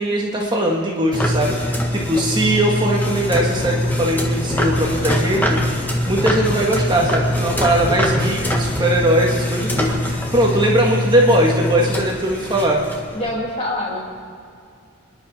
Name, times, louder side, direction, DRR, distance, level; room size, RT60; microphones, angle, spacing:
voice 1, 0.0-5.6 6.1-12.8, right 1 dB, 20° right, -2 dB, 1.8 m, -20 dB
sound 1, 1.1-13.3, left 1 dB, 10° left, 1.6 m, -22 dB
voice 2, 13.1-14.0, left 1 dB, 30° left, -3 dB, 3.1 m, -25 dB
26.5 x 11.0 x 4.4 m, 2.3 s
head